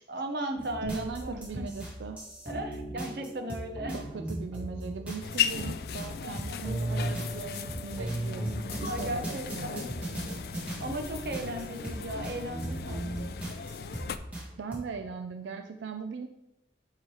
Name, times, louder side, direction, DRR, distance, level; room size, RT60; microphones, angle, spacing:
voice 1, 0.1-1.6 2.5-4.0 6.2-6.6 8.9-9.9 10.8-13.1, right 1 dB, 55° right, 5 dB, 0.8 m, -36 dB
sound 1, 0.6-14.4 14.7-14.8, right 1 dB, 10° right, 1.7 m, -37 dB
sound 2, 0.8-3.3, right 1 dB, 10° left, 1.0 m, -47 dB
voice 2, 0.8-2.2 3.9-9.8 14.6-16.3, right 5 dB, 85° right, 5 dB, 0.4 m, -39 dB
sound 3, 5.2-14.2, left 8 dB, 55° left, 0.3 m, -37 dB
8.4 x 3.2 x 4.7 m, 0.88 s
head